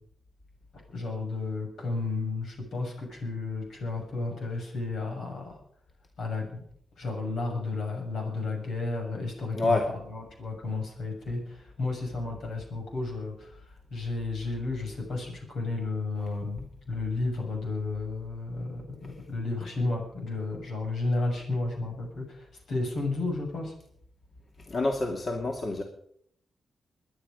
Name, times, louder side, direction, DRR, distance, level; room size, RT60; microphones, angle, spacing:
voice 1, 0.9-5.5 6.2-6.6 7.0-13.5 13.9-23.7, left 3 dB, 80° left, 1 dB, 6.6 m, -32 dB
voice 2, 24.7-25.8, left 2 dB, 45° left, 1 dB, 2.4 m, -27 dB
22.5 x 10.5 x 5.2 m, 0.67 s
cardioid pair, 80°, 0 cm